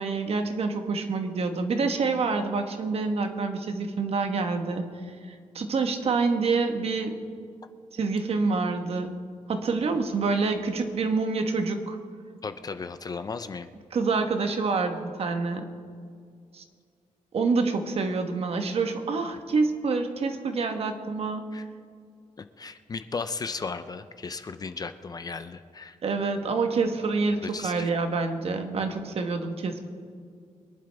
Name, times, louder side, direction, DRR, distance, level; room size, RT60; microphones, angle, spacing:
voice 1, 0.0-4.8 5.3-7.1 7.9-9.1 9.5-12.0 13.9-15.7 16.5-16.6 17.3-21.5 26.0-29.9, right 4 dB, 50° right, 6 dB, 1.2 m, -27 dB
voice 2, 12.4-13.7 21.5-21.6 22.6-26.0 27.4-27.9, left 4 dB, 30° left, 10 dB, 0.5 m, -35 dB
24.5 x 11.0 x 3.4 m, 2.3 s
wide cardioid pair, 175°, 13 cm